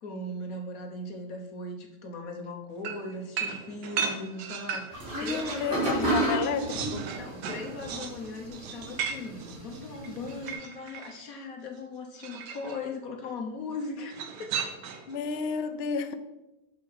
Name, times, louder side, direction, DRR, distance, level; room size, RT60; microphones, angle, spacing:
voice 1, 0.0-6.4 7.2-14.5, left 2 dB, 60° left, 3 dB, 1.5 m, -38 dB
sound 1, 2.8-5.7 6.1-11.2 12.2-12.8 14.1-15.2, right 6 dB, 90° right, 1.4 m, -36 dB
sound 2, 4.9-10.5, right 1 dB, 55° right, 3.0 m, -33 dB
voice 2, 5.1-7.1 15.1-16.1, left 6 dB, 85° left, 10 dB, 0.5 m, -32 dB
6.7 x 5.5 x 5.6 m, 1.0 s
omnidirectional pair, 1.8 m